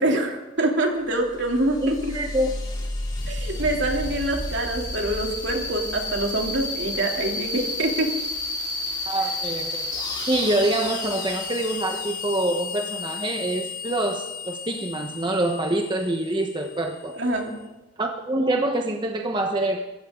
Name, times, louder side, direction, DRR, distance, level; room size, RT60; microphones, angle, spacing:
voice 1, 0.0-2.1 3.3-8.1 17.1-17.6, right 1 dB, 65° right, 1 dB, 3.2 m, -25 dB
sound 1, 1.1-17.5, left 3 dB, 25° left, 4.1 m, -32 dB
voice 2, 1.8-2.5 9.1-9.9 10.3-17.1 18.0-19.8, right 1 dB, 25° right, 3 dB, 1.2 m, -25 dB
25.5 x 15.0 x 3.9 m, 1.1 s
head